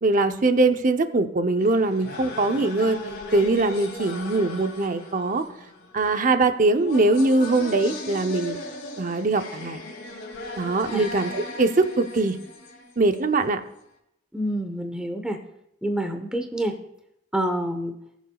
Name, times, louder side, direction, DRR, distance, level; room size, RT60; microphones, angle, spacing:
voice 1, 0.0-3.0 3.3-5.4 5.9-8.6 9.0-9.8 10.6-12.4 13.0-13.6, right 2 dB, 45° right, 8 dB, 0.7 m, -22 dB
sound 1, 1.6-13.5, left 2 dB, 55° left, 2.4 m, -38 dB
voice 2, 14.3-15.4 15.8-16.8 17.3-17.9, right 1 dB, 5° right, 5 dB, 0.9 m, -27 dB
19.5 x 7.2 x 2.3 m, 0.79 s
head